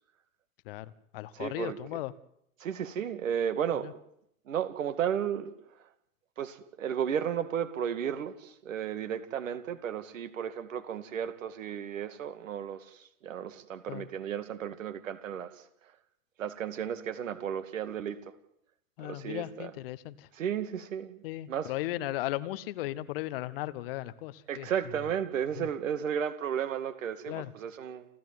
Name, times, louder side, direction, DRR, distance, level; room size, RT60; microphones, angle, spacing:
voice 1, 0.6-2.1 3.8-3.9 13.9-14.1 19.0-20.3 21.2-24.7 25.6-25.7 27.3-27.5, left 15 dB, 40° left, 15 dB, 1.1 m, -36 dB
voice 2, 1.4-2.0 2.6-3.9 4.5-5.5 6.4-15.5 16.4-18.2 19.0-19.7 20.4-21.2 21.5-21.7 24.5-28.1, right 8 dB, 60° right, 10 dB, 2.4 m, -33 dB
29.0 x 12.5 x 9.5 m, 0.74 s
figure-of-eight pair, 110°, 44 cm